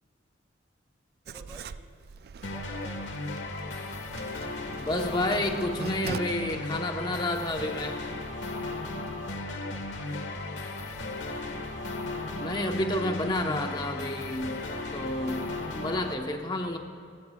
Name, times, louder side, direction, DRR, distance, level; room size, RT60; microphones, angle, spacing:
voice 1, 1.3-1.8 2.5-3.2 9.3-10.6, right 1 dB, 15° right, 2 dB, 1.6 m, -50 dB
Writing, 1.3-6.2, right 5 dB, 55° right, 0.4 m, -42 dB
sound 1, 2.4-16.1, left 2 dB, 85° left, 1.4 m, -35 dB
voice 2, 4.8-8.2 12.4-14.6 14.9-15.5 15.7-16.8, left 1 dB, 25° left, 4 dB, 0.9 m, -30 dB
26.0 x 15.0 x 2.3 m, 2.4 s
head